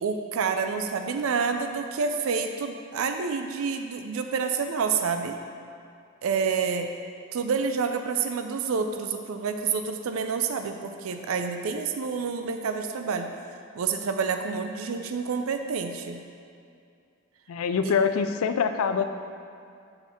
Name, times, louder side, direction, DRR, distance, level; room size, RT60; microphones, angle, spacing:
voice 1, 0.0-5.4 6.2-6.9 7.3-13.3 13.8-16.2 17.8-17.9, right 5 dB, 80° right, 6 dB, 0.4 m, -28 dB
voice 2, 17.5-19.1, left 6 dB, 90° left, 9 dB, 0.4 m, -24 dB
6.5 x 4.4 x 5.6 m, 2.4 s
head